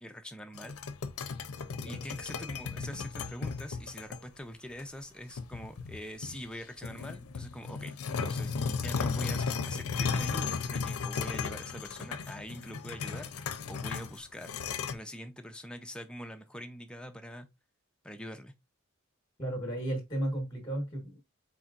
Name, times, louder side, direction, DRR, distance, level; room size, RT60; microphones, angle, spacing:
voice 1, 0.0-0.8 1.8-14.5 14.9-17.5 18.0-18.5, equal, 5° left, 0.5 m, -44 dB
sound 1, 0.5-4.2 4.8-4.9 5.4-6.5 6.8-14.9, left 5 dB, 75° left, 0.6 m, -35 dB
voice 2, 19.4-21.2, right 1 dB, 20° left, 1.2 m, -34 dB
4.3 x 4.2 x 2.4 m
head